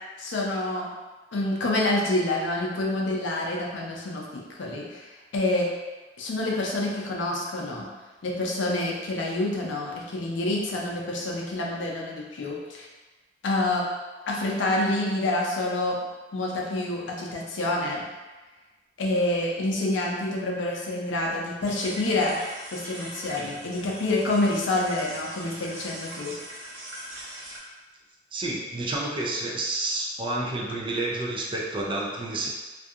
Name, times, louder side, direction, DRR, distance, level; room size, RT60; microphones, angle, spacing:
voice 1, 0.2-0.9 1.3-5.1 5.3-5.7 6.2-7.9 8.2-12.9 13.4-13.8 14.3-16.0 16.3-18.0 19.0-22.4 22.7-26.3, left 2 dB, 75° left, -2 dB, 0.5 m, -27 dB
sound 1, 21.6-27.6, right 1 dB, 80° right, 0.8 m, -41 dB
voice 2, 28.3-32.5, right 2 dB, 25° right, -1 dB, 0.4 m, -29 dB
2.6 x 2.5 x 2.4 m, 1.2 s
head